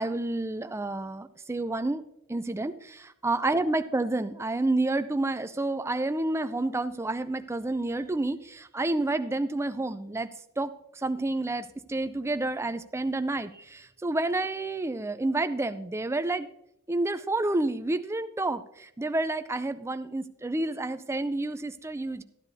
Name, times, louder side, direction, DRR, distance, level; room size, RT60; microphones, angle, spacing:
voice 1, 0.0-2.0 2.3-10.3 10.6-16.5 16.9-22.2, right 2 dB, 10° right, 11 dB, 0.4 m, -29 dB
13.5 x 10.5 x 2.7 m, 0.77 s
head